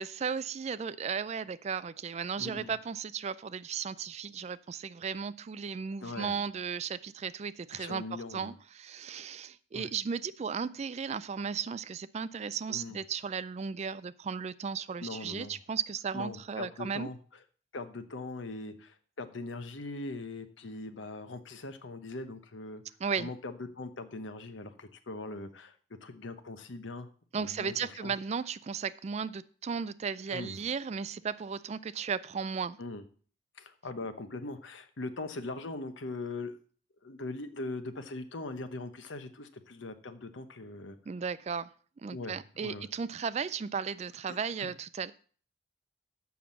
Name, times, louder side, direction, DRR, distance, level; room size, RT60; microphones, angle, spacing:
voice 1, 0.0-17.1 23.0-23.3 27.3-32.8 41.1-41.7 42.0-45.1, right 6 dB, 35° right, 17 dB, 0.3 m, -35 dB
voice 2, 2.3-2.7 6.0-6.4 7.7-8.5 9.7-9.9 12.7-13.0 15.0-15.6 16.1-17.2 17.7-22.8 23.2-25.7 26.0-28.1 30.3-30.6 32.8-33.0 33.6-36.5 37.0-41.0 42.1-42.8 44.3-44.7, left 2 dB, 70° left, 9 dB, 1.0 m, -41 dB
7.1 x 6.1 x 7.2 m, 0.44 s
head